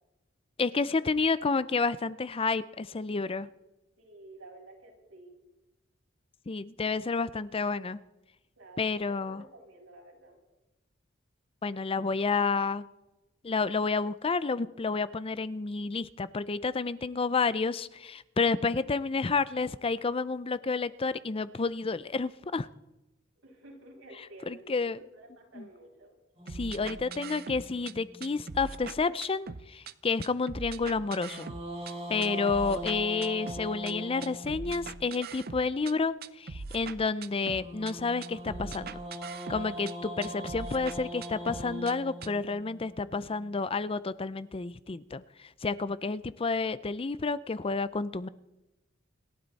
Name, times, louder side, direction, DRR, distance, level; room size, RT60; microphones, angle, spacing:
voice 1, 0.6-3.5 6.5-8.0 8.8-9.4 11.6-12.8 13.4-22.7 24.5-25.0 25.5-25.7 26.5-31.5 32.1-39.0 39.5-48.3, left 4 dB, 30° left, 16 dB, 0.5 m, -30 dB
voice 2, 4.0-5.3 7.1-7.2 8.6-10.4 23.4-26.1, right 2 dB, 85° right, -2 dB, 6.5 m, -51 dB
sound 1, 26.4-28.8 31.0-35.2 37.3-43.5, equal, 30° right, 4.7 m, -41 dB
sound 2, 26.5-27.9 28.2-29.9 30.2-31.9 32.2-33.9 34.2-35.9 36.2-37.9 38.2-39.9 40.2-41.9 42.2-42.3, right 4 dB, 50° right, 0.7 m, -41 dB
28.0 x 12.0 x 4.1 m, 0.98 s
head